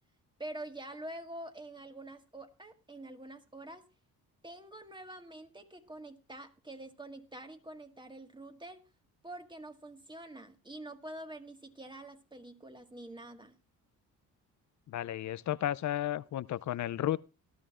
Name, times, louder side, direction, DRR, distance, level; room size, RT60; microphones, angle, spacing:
voice 1, 0.4-3.8 4.4-8.8 9.2-13.6, right 1 dB, 10° right, 1.8 m, -46 dB
voice 2, 14.9-17.2, left 12 dB, 50° left, 0.6 m, -33 dB
19.0 x 12.0 x 2.5 m
supercardioid pair, 65°, 37 cm